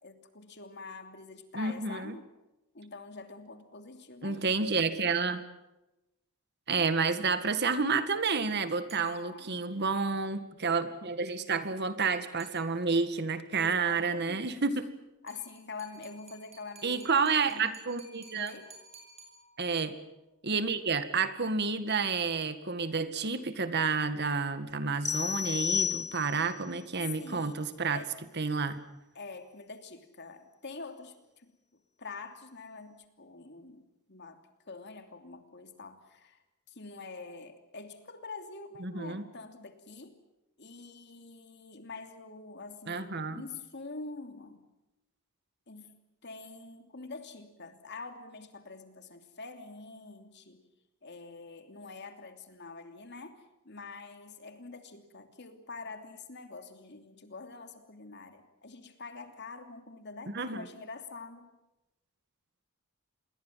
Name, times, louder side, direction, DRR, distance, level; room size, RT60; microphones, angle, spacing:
voice 1, 0.0-2.3 2.7-4.5 9.0-9.7 13.5-14.6 15.2-17.1 17.5-17.8 18.3-18.7 27.2-28.1 29.1-34.4 34.7-36.4 36.7-40.2 40.6-44.6 45.7-50.6 51.0-61.5, left 3 dB, 55° left, 7 dB, 3.0 m, -46 dB
voice 2, 1.6-2.2 4.2-5.4 6.7-14.9 16.8-18.5 19.6-20.0 20.4-28.0 28.4-28.8 38.8-39.3 42.9-43.4 60.3-60.6, right 4 dB, 55° right, 11 dB, 1.9 m, -30 dB
sound 1, 8.9-9.7 12.4-13.2 15.3-20.0, right 2 dB, 30° right, 7.3 m, -56 dB
sound 2, 25.1-26.6, left 7 dB, 15° left, 1.5 m, -31 dB
27.5 x 22.0 x 7.6 m, 0.96 s
head